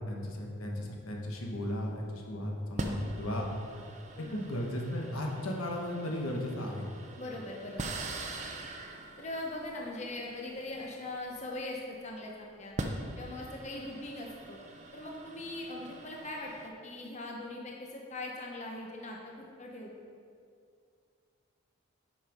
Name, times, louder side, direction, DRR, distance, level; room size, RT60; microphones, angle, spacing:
voice 1, 0.1-3.5 4.3-6.9, left 1 dB, 90° left, 0 dB, 1.3 m, -35 dB
sound 1, 1.6-1.8 2.8-11.8 12.5-16.7, right 2 dB, 35° right, 0.6 m, -43 dB
voice 2, 7.2-7.8 9.2-12.8 13.2-14.6 14.9-19.9, left 2 dB, 35° left, -1 dB, 0.8 m, -41 dB
7.6 x 5.8 x 5.2 m, 2.3 s
head